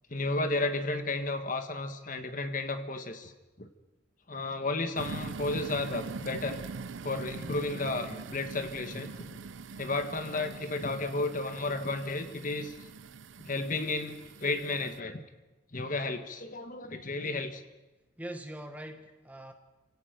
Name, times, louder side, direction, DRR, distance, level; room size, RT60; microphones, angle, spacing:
voice 1, 0.1-3.3 3.6-3.7 4.3-6.6 7.0-9.4 9.8-12.8 13.4-15.2 15.7-17.6, left 2 dB, 45° left, 8 dB, 1.5 m, -33 dB
sound 1, 5.0-15.0, right 4 dB, 80° right, 0.6 m, -43 dB
voice 2, 18.2-19.5, right 1 dB, 10° right, 6 dB, 1.4 m, -42 dB
29.5 x 17.0 x 5.2 m, 1.1 s
head